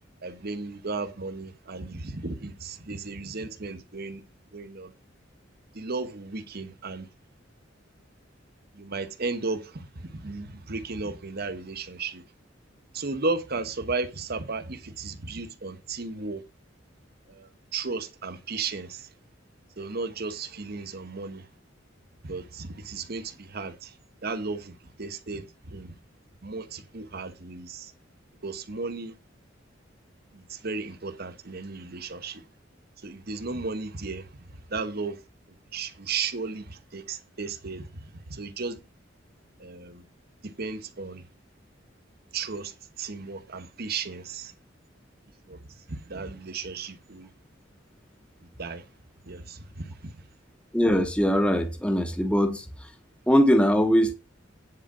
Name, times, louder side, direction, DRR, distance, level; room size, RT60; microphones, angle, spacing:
voice 1, 0.2-4.2 4.5-4.9 5.7-7.1 8.7-12.2 12.9-16.4 17.3-19.1 19.8-21.4 22.2-23.9 24.2-25.9 26.4-27.9 28.4-29.1 30.3-32.4 33.0-34.3 34.7-35.2 35.7-37.9 38.3-38.8 39.6-40.0 40.4-41.2 42.3-44.5 45.5-45.6 45.9-47.3 48.6-48.8 49.3-49.9, right 4 dB, 55° right, 1.1 m, -34 dB
voice 2, 50.7-52.6 53.3-54.1, equal, 5° left, 1.0 m, -21 dB
9.9 x 4.9 x 6.1 m
head